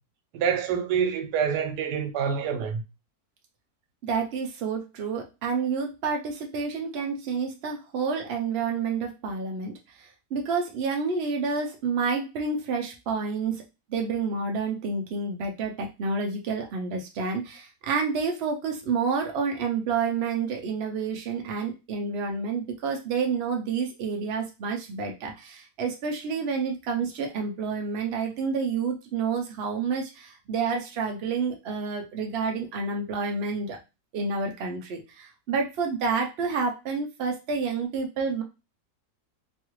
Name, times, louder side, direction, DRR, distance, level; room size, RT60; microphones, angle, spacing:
voice 1, 0.3-2.8, right 7 dB, 90° right, 1.2 m, -26 dB
voice 2, 4.0-13.6 13.9-33.8 34.1-38.4, right 5 dB, 70° right, 0.6 m, -29 dB
3.1 x 2.3 x 3.0 m
omnidirectional pair, 1.7 m